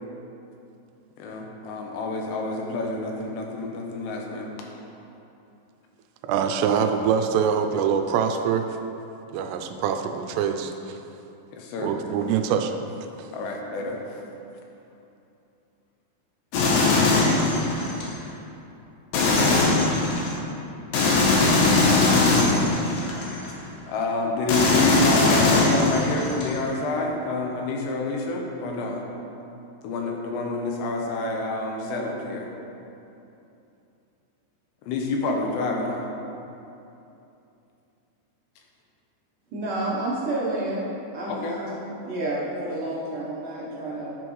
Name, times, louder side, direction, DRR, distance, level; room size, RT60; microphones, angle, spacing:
voice 1, 1.2-4.5 11.5-11.9 13.3-14.0 23.9-29.0 29.8-32.5 34.9-36.1 41.3-41.6, left 2 dB, 90° left, 0 dB, 3.1 m, -28 dB
voice 2, 6.2-8.7 9.3-11.0 11.8-12.7 13.2-13.3, right 7 dB, 90° right, 6 dB, 2.7 m, -24 dB
sound 1, 16.5-18.1 19.1-20.3 20.9-23.5 24.5-26.5, left 3 dB, 70° left, 2.3 m, -20 dB
voice 3, 39.5-40.8 41.1-44.2, right 2 dB, 70° right, -7 dB, 2.2 m, -30 dB
10.5 x 6.2 x 3.1 m, 2.8 s
omnidirectional pair, 4.8 m